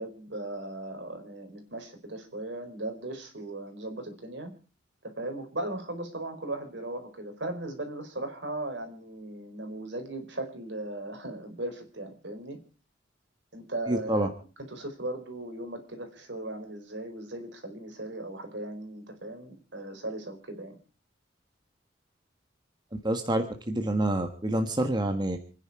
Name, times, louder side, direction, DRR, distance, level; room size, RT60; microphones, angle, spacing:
voice 1, 0.0-4.5 5.0-12.6 13.5-14.3 14.7-20.8, right 2 dB, 70° right, 5 dB, 4.4 m, -37 dB
voice 2, 13.9-14.3 22.9-25.4, right 1 dB, 25° right, 5 dB, 1.6 m, -27 dB
28.0 x 10.0 x 4.8 m, 0.38 s
head